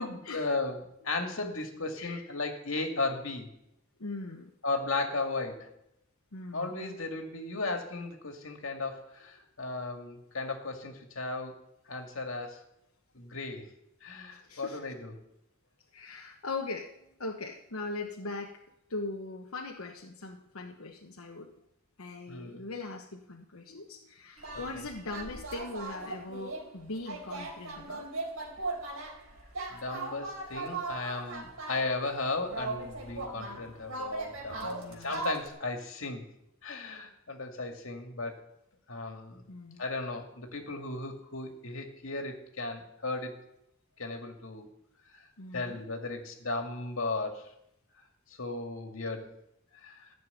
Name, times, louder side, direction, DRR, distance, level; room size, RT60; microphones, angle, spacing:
voice 1, 0.0-3.5 4.6-5.7 6.5-11.6 11.9-12.6 13.1-13.7 14.0-15.1 22.3-22.6 24.5-24.6 29.7-36.2 36.6-38.5 38.9-39.4 39.8-43.3 44.0-44.7 45.1-45.2 45.5-47.5 48.3-49.3 49.8-50.1, left 3 dB, 70° left, 3 dB, 2.3 m, -35 dB
voice 2, 4.0-4.5 6.3-6.7 14.4-14.8 15.9-18.6 18.9-21.5 22.0-28.1 34.6-35.1 39.5-39.8 45.4-45.8, left 3 dB, 90° left, 1 dB, 1.2 m, -40 dB
sound 1, 24.4-32.1 32.4-35.5, right 3 dB, 85° right, 3.9 m, -38 dB
14.5 x 6.9 x 9.7 m, 0.79 s
head